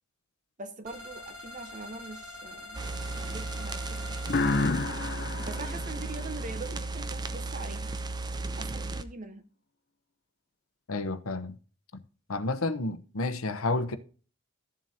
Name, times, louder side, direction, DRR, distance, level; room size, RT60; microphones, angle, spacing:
voice 1, 0.6-4.8 5.5-7.9 8.6-9.4, right 3 dB, 35° right, 1.0 m, -43 dB
sound 1, 0.8-4.7, left 2 dB, 80° right, 4.2 m, -45 dB
vinyl noise, 2.7-9.0, right 3 dB, 20° right, 0.5 m, -35 dB
sound 2, 4.3-7.0, left 3 dB, 45° left, 0.6 m, -30 dB
voice 2, 10.9-11.5 12.3-14.0, left 2 dB, 75° left, 0.9 m, -30 dB
14.0 x 7.5 x 2.8 m
head